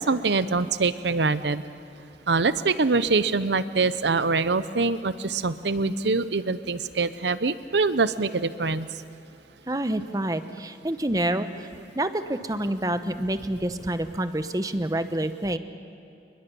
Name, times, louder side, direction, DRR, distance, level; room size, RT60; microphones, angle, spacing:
voice 1, 0.0-1.6 2.3-8.9, right 4 dB, 85° right, 14 dB, 0.8 m, -24 dB
voice 2, 9.7-11.7 11.9-15.6, right 1 dB, 20° right, 10 dB, 0.9 m, -27 dB
28.5 x 21.0 x 7.1 m, 2.7 s
head